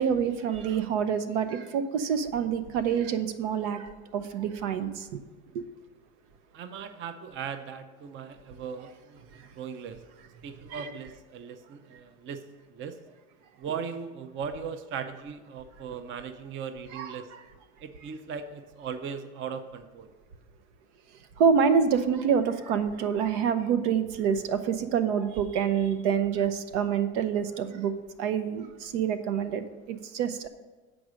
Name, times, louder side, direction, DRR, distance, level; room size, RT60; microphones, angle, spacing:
voice 1, 0.0-5.2 5.5-5.6 10.7-10.9 16.9-17.2 21.4-27.9 28.2-30.5, right 7 dB, 80° right, 11 dB, 0.8 m, -27 dB
voice 2, 6.5-10.0 10.4-13.0 13.6-17.3 17.8-20.1, right 6 dB, 35° right, 10 dB, 0.6 m, -38 dB
7.8 x 4.9 x 6.3 m, 1.3 s
supercardioid pair, 110°, 35 cm